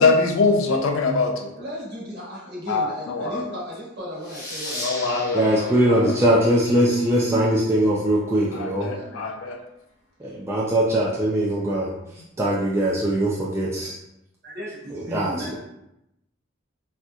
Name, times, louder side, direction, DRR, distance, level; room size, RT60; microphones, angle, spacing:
voice 1, 0.0-1.5 2.7-3.5 4.8-6.0 8.5-9.6, left 3 dB, 65° left, 3 dB, 0.4 m, -23 dB
voice 2, 1.6-5.3 8.7-9.3 14.4-15.5, equal, 55° right, -7 dB, 1.2 m, -36 dB
sound 1, 4.2-7.5, left 1 dB, 50° left, 1.1 m, -37 dB
voice 3, 5.3-8.9 10.2-11.9 12.4-14.0 14.9-15.5, right 1 dB, 15° right, -6 dB, 0.4 m, -21 dB
4.1 x 2.4 x 2.3 m, 0.86 s
head